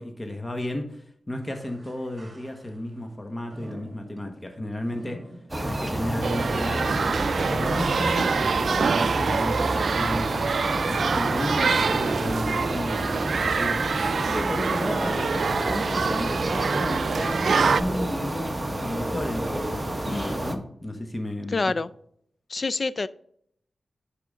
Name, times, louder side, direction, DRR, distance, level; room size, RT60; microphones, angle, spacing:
voice 1, 0.0-5.3 5.6-10.5 10.9-13.9 14.2-21.7, left 1 dB, 25° left, 4 dB, 1.4 m, -33 dB
sound 1, 1.4-3.0 3.5-8.7 9.2-9.3 10.2-10.3, right 1 dB, 40° right, 2.1 m, -45 dB
sound 2, 5.5-20.5, right 1 dB, 15° right, 1.3 m, -29 dB
sound 3, 6.2-17.8, right 5 dB, 75° right, 0.3 m, -26 dB
voice 2, 20.1-20.4 21.5-21.9 22.5-23.1, left 3 dB, 50° left, 15 dB, 0.4 m, -27 dB
10.5 x 5.0 x 3.7 m, 0.67 s
cardioid pair, 65°, 0 cm